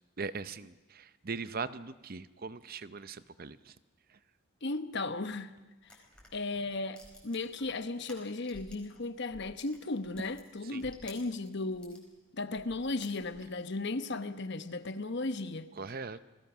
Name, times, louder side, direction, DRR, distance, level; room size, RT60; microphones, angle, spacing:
voice 1, 0.2-3.7 10.7-10.9 15.8-16.2, right 4 dB, 45° right, 0.7 m, -40 dB
voice 2, 4.6-5.5 6.3-12.1 12.3-15.7, left 3 dB, 55° left, 1.1 m, -36 dB
sound 1, 5.8-9.0 9.3-12.0 12.5-13.6, left 1 dB, 5° left, 4.5 m, -54 dB
29.5 x 20.0 x 6.1 m
head